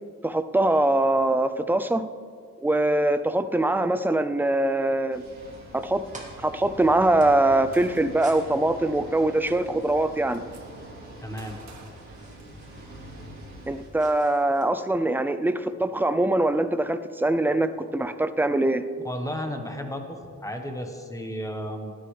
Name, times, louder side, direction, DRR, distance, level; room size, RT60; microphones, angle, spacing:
voice 1, 0.2-2.1 2.6-5.2 5.7-6.0 6.4-10.4 13.7-18.8, right 1 dB, 5° right, 10 dB, 0.3 m, -23 dB
sound 1, 5.1-13.9, right 1 dB, 40° right, 3.8 m, -44 dB
sound 2, 6.0-14.7, right 2 dB, 25° right, 2.1 m, -52 dB
Gunshot gunfire, 7.7-8.4 9.5-9.6 9.9-10.6 11.4-12.9, right 3 dB, 65° right, 1.7 m, -50 dB
voice 2, 11.2-11.6 19.0-21.9, equal, 10° left, 4 dB, 1.1 m, -33 dB
18.5 x 10.0 x 3.2 m, 2.1 s
wide cardioid pair, 160°, 30 cm